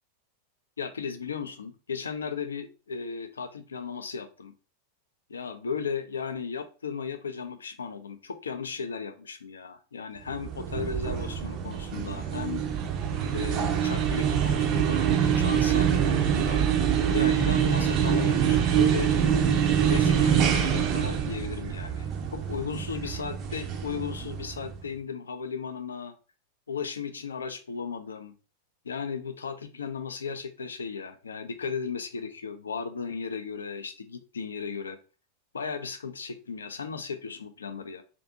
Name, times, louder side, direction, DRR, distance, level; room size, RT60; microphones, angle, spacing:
voice 1, 0.8-4.5 5.3-12.6 13.3-16.6 17.1-19.1 19.7-22.1 22.3-26.1 26.7-28.3 28.8-35.0 35.5-38.0, left 6 dB, 70° left, 9 dB, 0.3 m, -35 dB
sound 1, 10.3-24.8, right 8 dB, 40° right, 0.4 m, -25 dB
2.6 x 2.5 x 2.4 m, 0.34 s
figure-of-eight pair, 90°, 0 cm